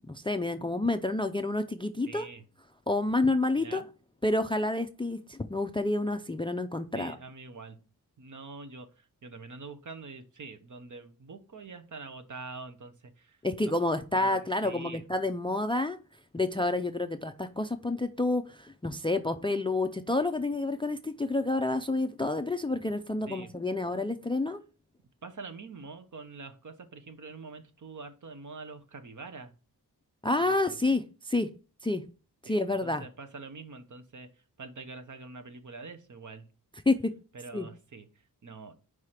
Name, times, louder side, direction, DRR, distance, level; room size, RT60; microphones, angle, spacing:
voice 1, 0.1-2.3 2.9-3.8 4.2-7.1 13.4-16.0 16.3-24.6 30.2-31.5 31.8-32.0 32.4-33.0 36.9-37.1 37.5-37.7, left 2 dB, 15° left, 0.4 m, -29 dB
voice 2, 2.1-2.4 3.6-3.9 6.9-7.8 8.2-13.4 14.1-15.0 23.3-23.5 25.2-29.5 30.5-31.0 32.5-36.5 37.3-38.7, right 4 dB, 50° right, 1.0 m, -45 dB
4.8 x 4.8 x 5.7 m
wide cardioid pair, 145°, 38 cm